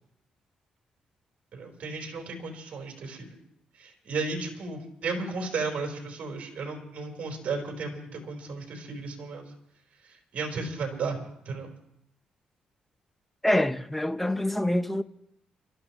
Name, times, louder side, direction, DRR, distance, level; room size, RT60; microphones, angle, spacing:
voice 1, 1.5-3.3 3.8-9.5 10.0-11.7, right 4 dB, 60° right, 3.8 m, -34 dB
voice 2, 13.4-15.0, left 1 dB, 5° left, 0.7 m, -25 dB
28.0 x 13.0 x 3.0 m
cardioid pair, 115°, 3 cm